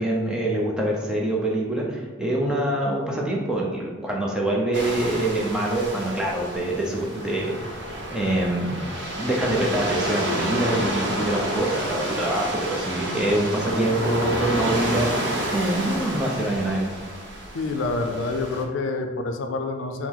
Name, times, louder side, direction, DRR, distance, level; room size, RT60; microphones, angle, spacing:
voice 1, 0.0-7.8 8.1-8.8 9.2-16.9, right 1 dB, 5° right, -3 dB, 0.5 m, -25 dB
sound 1, 4.7-18.6, right 1 dB, 60° right, 0.7 m, -30 dB
voice 2, 17.5-20.1, left 3 dB, 75° left, 5 dB, 0.4 m, -27 dB
4.5 x 2.0 x 3.7 m, 1.3 s
head